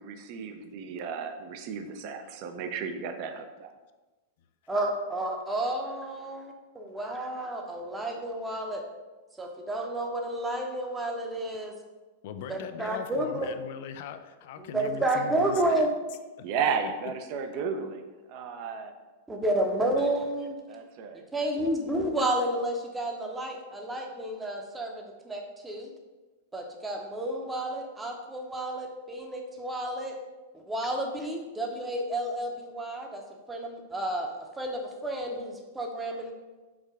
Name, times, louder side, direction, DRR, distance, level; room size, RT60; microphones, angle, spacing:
voice 1, 0.0-3.7 16.4-18.0 18.3-18.9 20.7-21.2, right 6 dB, 50° right, 7 dB, 0.5 m, -33 dB
voice 2, 4.7-8.8 9.4-11.7 12.5-13.5 14.6-15.9 19.3-20.6 21.3-25.9 26.5-30.2 30.5-33.2 33.5-36.3, right 1 dB, 10° right, 2 dB, 0.7 m, -31 dB
voice 3, 12.2-15.8 16.4-16.5, left 7 dB, 65° left, 10 dB, 0.3 m, -40 dB
4.7 x 2.2 x 4.7 m, 1.2 s
hypercardioid pair, 120°, 0 cm